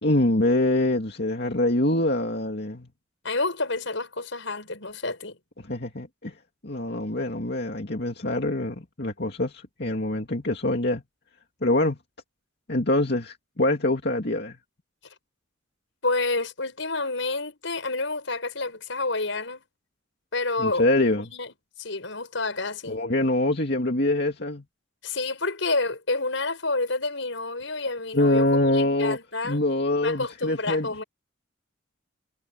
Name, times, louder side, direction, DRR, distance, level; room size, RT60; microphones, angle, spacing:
voice 1, 0.0-2.9 5.6-6.4 6.6-11.0 11.6-12.0 12.7-14.6 20.6-21.3 22.9-24.6 28.1-29.2 29.4-31.0, left 1 dB, 55° left, 2.5 m, -24 dB
voice 2, 3.2-5.4 16.0-19.6 20.3-20.8 21.2-21.5 21.8-23.0 25.0-29.6 30.0-31.0, left 3 dB, 75° left, 5.8 m, -29 dB
head